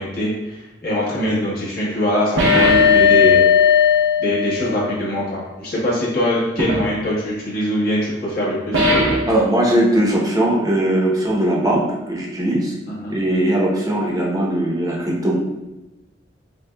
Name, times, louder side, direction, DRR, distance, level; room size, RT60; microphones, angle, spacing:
voice 1, 0.0-3.4 4.2-8.8 13.0-13.1, equal, 55° left, -7 dB, 1.4 m, -22 dB
sound 1, 2.4-4.9 6.6-6.8 8.7-9.3, left 5 dB, 85° right, 0.9 m, -15 dB
voice 2, 9.3-12.8 13.1-15.4, right 1 dB, 20° right, -3 dB, 0.8 m, -19 dB
6.8 x 2.3 x 2.2 m, 1.0 s
head